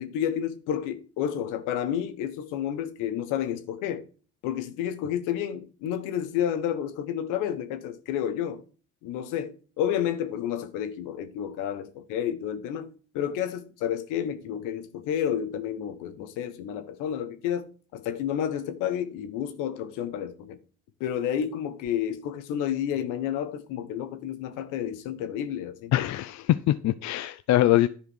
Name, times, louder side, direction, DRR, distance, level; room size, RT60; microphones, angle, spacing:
voice 1, 0.0-4.1 4.4-8.6 9.0-20.6 21.0-25.9, left 9 dB, 85° left, 1.3 m, -30 dB
voice 2, 25.9-27.9, left 14 dB, 65° left, 0.6 m, -23 dB
10.5 x 5.0 x 6.1 m
supercardioid pair, 65°, 30 cm